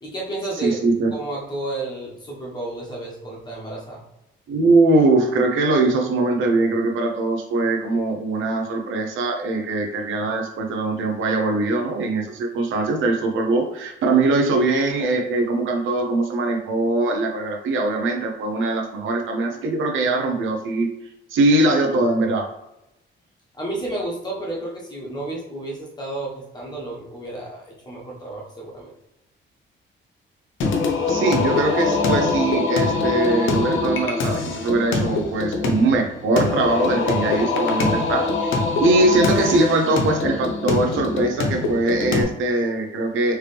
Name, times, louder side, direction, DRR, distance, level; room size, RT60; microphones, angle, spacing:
voice 1, 0.0-0.8 1.1-4.0 23.6-28.9, right 2 dB, 20° left, -3 dB, 1.2 m, -31 dB
voice 2, 0.6-1.1 4.5-20.9 21.3-22.5 31.1-43.4, right 2 dB, 90° right, 2 dB, 0.7 m, -21 dB
Singing, 30.6-42.2, left 3 dB, 80° left, 0.8 m, -23 dB
4.4 x 3.3 x 3.3 m, 0.91 s
cardioid pair, 155°, 20 cm